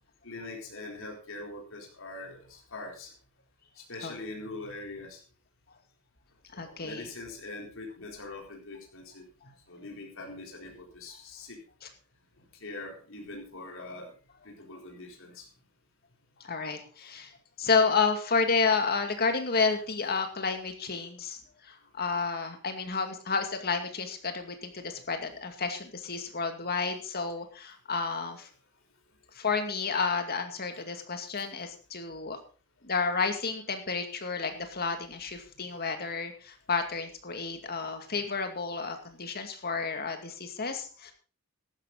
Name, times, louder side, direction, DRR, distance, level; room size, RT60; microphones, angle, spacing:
voice 1, 0.2-3.1 3.9-5.2 6.5-9.2 9.7-11.6 12.6-14.1 14.4-15.5, left 2 dB, 60° left, 0 dB, 4.1 m, -42 dB
voice 2, 6.5-7.1 16.4-17.3 17.6-28.5 29.3-32.4 32.8-41.1, left 4 dB, 45° left, 6 dB, 2.3 m, -31 dB
14.5 x 12.0 x 4.0 m, 0.37 s
head